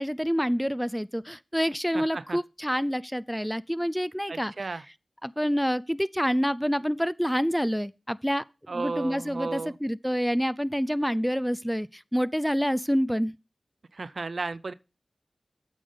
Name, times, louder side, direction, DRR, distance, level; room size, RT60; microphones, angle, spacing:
voice 1, 0.0-4.5 5.2-8.4 8.7-13.3, equal, ahead, 0.4 m, -27 dB
voice 2, 1.9-2.4 4.3-4.8 8.7-9.8 13.9-14.7, right 3 dB, 70° right, 0.4 m, -34 dB
8.4 x 5.1 x 5.5 m
cardioid pair, 40°, 0 cm